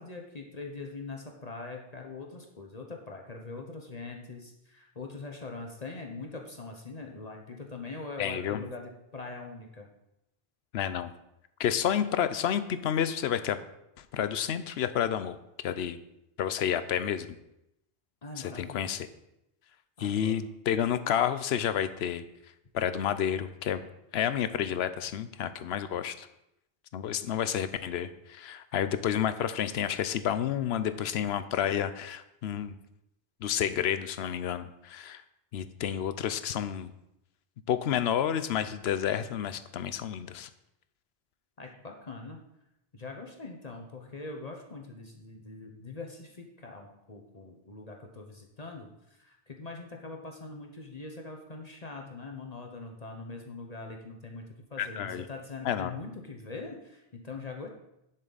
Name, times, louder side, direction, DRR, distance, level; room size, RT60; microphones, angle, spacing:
voice 1, 0.0-9.9 18.2-19.0 20.0-20.4 41.6-42.4 42.9-54.4 54.7-57.7, left 3 dB, 40° left, 2 dB, 1.0 m, -42 dB
voice 2, 8.2-8.6 10.7-11.1 11.6-13.6 14.0-16.0 16.4-17.3 18.4-19.1 20.0-22.2 22.7-23.8 24.1-26.3 26.9-32.8 33.4-35.2 35.5-36.9 37.7-40.5 54.8-55.2 55.6-55.9, left 9 dB, 85° left, 12 dB, 0.9 m, -30 dB
11.0 x 6.6 x 4.0 m, 0.86 s
omnidirectional pair, 1.0 m